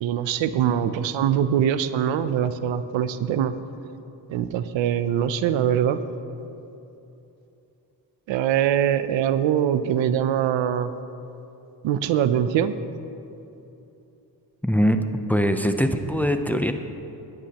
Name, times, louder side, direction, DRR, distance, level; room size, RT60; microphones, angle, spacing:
voice 1, 0.0-3.5 4.3-6.0 8.3-10.9 11.8-12.8, right 9 dB, 85° right, 12 dB, 0.6 m, -23 dB
voice 2, 14.6-15.0 15.3-16.7, equal, 5° left, 7 dB, 0.6 m, -21 dB
17.0 x 11.5 x 2.9 m, 2.9 s
cardioid pair, 80°, 45 cm